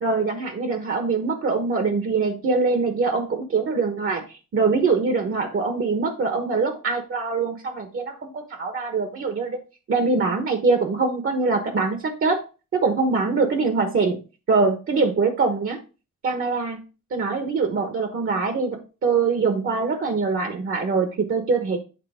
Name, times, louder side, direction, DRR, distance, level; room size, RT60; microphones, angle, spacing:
voice 1, 0.0-9.6 9.9-12.4 12.7-14.2 14.5-15.8 16.2-16.8 17.1-21.8, right 4 dB, 45° right, 7 dB, 1.2 m, -23 dB
8.8 x 3.9 x 5.0 m, 0.32 s
cardioid pair, 140°, 30 cm